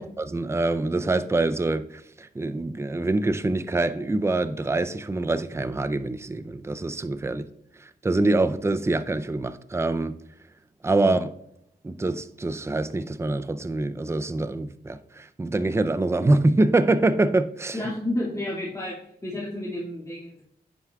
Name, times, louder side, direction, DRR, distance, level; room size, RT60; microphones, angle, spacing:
voice 1, 0.0-7.4 7.8-10.1 10.8-11.3 11.8-17.8, right 2 dB, 15° right, 0.5 m, -25 dB
voice 2, 17.7-18.9 19.2-20.4, left 1 dB, 20° left, 2.2 m, -31 dB
10.5 x 8.0 x 2.4 m
cardioid pair, 85°, 17 cm